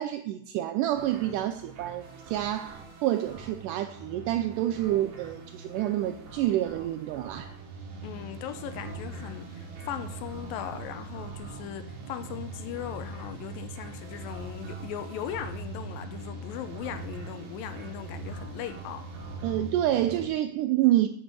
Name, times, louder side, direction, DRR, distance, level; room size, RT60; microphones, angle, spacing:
voice 1, 0.0-7.6 19.4-21.1, right 13 dB, 85° right, 10 dB, 1.8 m, -28 dB
sound 1, 0.9-20.3, right 3 dB, 60° right, 2.8 m, -42 dB
voice 2, 8.0-19.1, left 9 dB, 80° left, 10 dB, 2.5 m, -38 dB
7.6 x 7.2 x 6.8 m, 0.70 s
omnidirectional pair, 4.2 m